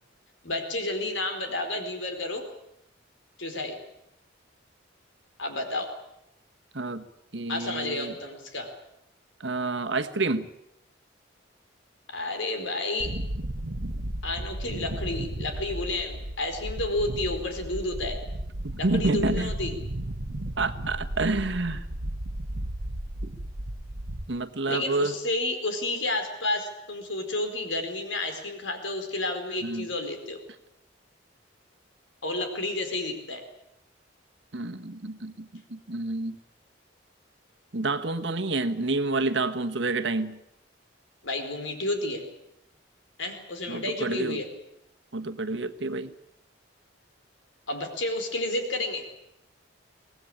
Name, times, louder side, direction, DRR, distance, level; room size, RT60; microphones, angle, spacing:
voice 1, 0.4-2.4 3.4-3.8 5.4-5.9 7.5-8.7 12.1-13.1 14.2-18.2 18.8-19.7 24.7-30.4 32.2-33.4 41.2-42.2 43.2-44.5 47.7-49.0, left 2 dB, 75° left, 6 dB, 4.7 m, -31 dB
voice 2, 6.7-7.1 7.3-8.1 9.4-10.5 18.6-19.5 20.6-21.9 23.2-23.3 24.3-25.1 29.6-29.9 34.5-36.4 37.7-40.4 43.7-44.4 45.1-46.1, right 3 dB, 65° right, 8 dB, 1.4 m, -29 dB
sound 1, 13.0-24.2, right 1 dB, 80° right, 1.5 m, -34 dB
24.0 x 19.0 x 8.8 m, 0.81 s
head